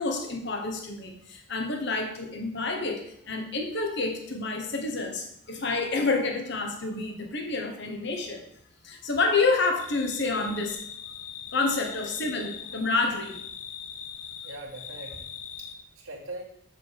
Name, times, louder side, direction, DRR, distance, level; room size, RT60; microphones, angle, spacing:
voice 1, 0.0-8.4 8.8-10.8 11.5-13.4, left 3 dB, 55° left, 3 dB, 1.3 m, -28 dB
sound 1, 9.8-15.7, left 7 dB, 75° left, 0.9 m, -41 dB
voice 2, 14.4-16.4, right 2 dB, 80° right, -4 dB, 2.0 m, -42 dB
7.5 x 6.8 x 4.8 m, 0.70 s
head